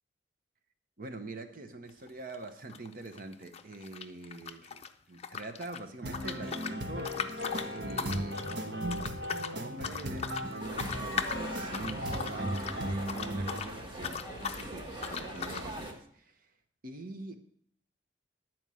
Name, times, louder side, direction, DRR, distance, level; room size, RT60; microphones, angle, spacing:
voice 1, 1.0-16.5 16.8-17.4, right 2 dB, 50° right, 8 dB, 0.9 m, -44 dB
sound 1, 1.9-2.1 2.3-4.9 5.2-13.7 14.0-14.7 15.0-15.7, left 6 dB, 35° left, 0.5 m, -39 dB
sound 2, 6.0-13.6, equal, 80° right, 1.2 m, -37 dB
sound 3, 10.6-15.9, right 1 dB, 30° right, 1.5 m, -41 dB
11.0 x 4.5 x 7.6 m, 0.66 s
head